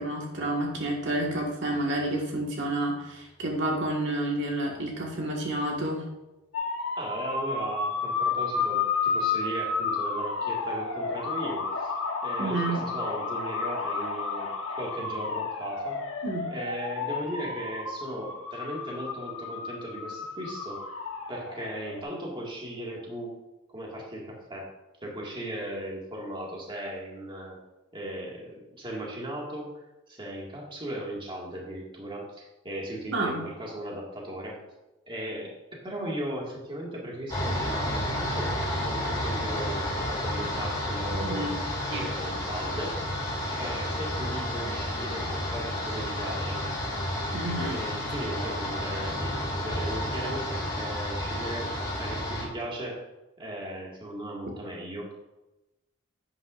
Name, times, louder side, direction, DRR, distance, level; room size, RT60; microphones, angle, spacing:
voice 1, 0.0-6.0 12.4-12.8 16.2-16.5 33.1-33.4 41.1-41.5 41.9-42.1 47.3-47.8, right 1 dB, 60° right, -1 dB, 1.8 m, -30 dB
sound 1, 6.5-22.0, left 4 dB, 85° left, 1.2 m, -31 dB
voice 2, 7.0-11.9 12.2-16.0 16.5-20.9 21.3-23.3 23.7-24.7 25.0-27.6 27.9-34.6 35.1-38.6 38.8-43.2 43.6-46.6 47.6-53.0 53.4-55.2, right 1 dB, 25° right, -3 dB, 2.1 m, -37 dB
sound 2, 37.3-52.5, left 1 dB, 20° left, 2.9 m, -31 dB
11.0 x 9.2 x 2.6 m, 1.0 s
head